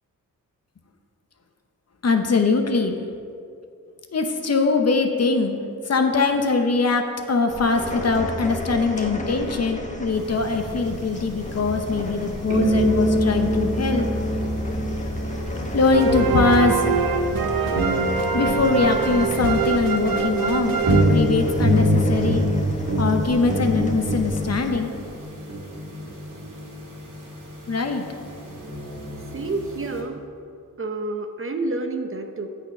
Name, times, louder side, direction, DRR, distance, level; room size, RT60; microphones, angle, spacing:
voice 1, 2.0-3.0 4.1-5.6 5.9-14.1 15.7-16.8 18.3-22.5 23.0-24.9 27.7-28.0, left 4 dB, 50° left, 5 dB, 0.9 m, -22 dB
sound 1, 7.5-24.7, left 1 dB, 20° left, 1.1 m, -35 dB
sound 2, 10.1-30.0, equal, 65° right, 2.1 m, -26 dB
sound 3, 15.9-21.8, right 5 dB, 85° right, 0.8 m, -24 dB
voice 2, 29.3-30.2 30.8-32.5, right 2 dB, 40° right, 6 dB, 0.8 m, -29 dB
9.2 x 6.4 x 5.4 m, 2.4 s
cardioid pair, 80°, 34 cm